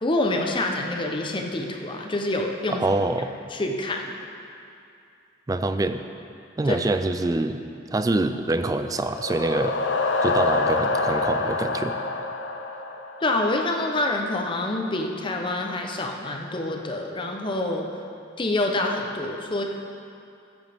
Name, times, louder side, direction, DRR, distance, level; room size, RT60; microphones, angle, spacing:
voice 1, 0.0-2.8 3.5-4.0 6.6-6.8 13.2-17.9 18.4-19.6, left 2 dB, 25° left, 2 dB, 0.7 m, -26 dB
voice 2, 2.7-3.3 5.5-6.0 6.6-7.6 7.9-9.8 10.2-12.0, right 2 dB, 20° right, 9 dB, 0.3 m, -25 dB
sound 1, 8.7-13.6, left 3 dB, 75° left, 0.7 m, -26 dB
14.5 x 8.0 x 3.5 m, 2.6 s
head